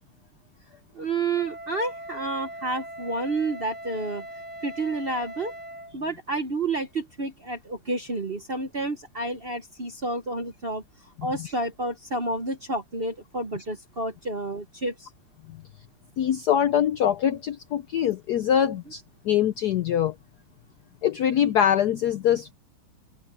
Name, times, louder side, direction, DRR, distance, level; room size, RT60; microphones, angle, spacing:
voice 1, 0.9-4.2 4.6-5.5 5.9-15.1, right 2 dB, 40° right, 0.9 m, -30 dB
Wind instrument woodwind instrument, 1.3-6.0, right 1 dB, 60° right, 7.4 m, -40 dB
voice 2, 16.2-20.1 21.0-22.5, left 9 dB, 70° left, 0.9 m, -23 dB
open air
omnidirectional pair, 2.4 m